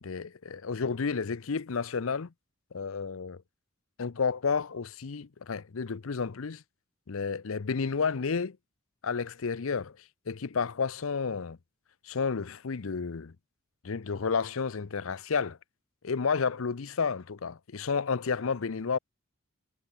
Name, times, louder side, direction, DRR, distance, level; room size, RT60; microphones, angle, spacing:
voice 1, 0.0-2.3 2.7-3.4 4.0-6.6 7.1-8.6 9.0-10.0 10.3-11.6 12.0-13.3 13.8-15.6 16.0-19.0, left 5 dB, 70° left, 0.6 m, -31 dB
head